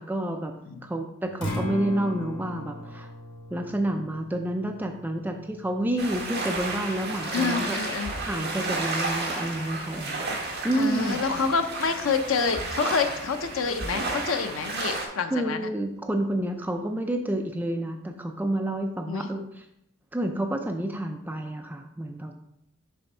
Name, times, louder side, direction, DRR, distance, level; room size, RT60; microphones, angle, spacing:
voice 1, 0.0-0.5 0.8-3.1 3.5-7.8 8.2-10.2 10.6-11.2 15.3-19.6 20.1-22.3, right 1 dB, 10° right, 3 dB, 0.4 m, -29 dB
Acoustic guitar, 1.3-9.5, left 1 dB, 60° left, 1.8 m, -40 dB
sound 1, 6.0-15.1, right 2 dB, 50° right, 1.4 m, -32 dB
voice 2, 7.3-8.1 10.7-15.7 19.1-19.2, left 5 dB, 80° left, 8 dB, 0.6 m, -27 dB
7.0 x 3.4 x 5.4 m, 0.80 s
head